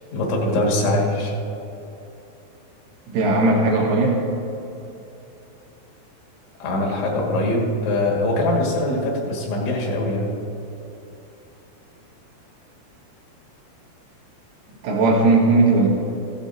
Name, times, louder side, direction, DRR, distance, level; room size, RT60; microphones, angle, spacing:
voice 1, 0.1-1.3 6.6-10.3, left 1 dB, 70° left, -2 dB, 4.2 m, -22 dB
voice 2, 3.1-4.3 14.8-15.9, right 2 dB, 90° right, -3 dB, 4.2 m, -17 dB
16.5 x 15.5 x 2.7 m, 2.9 s
omnidirectional pair, 5.6 m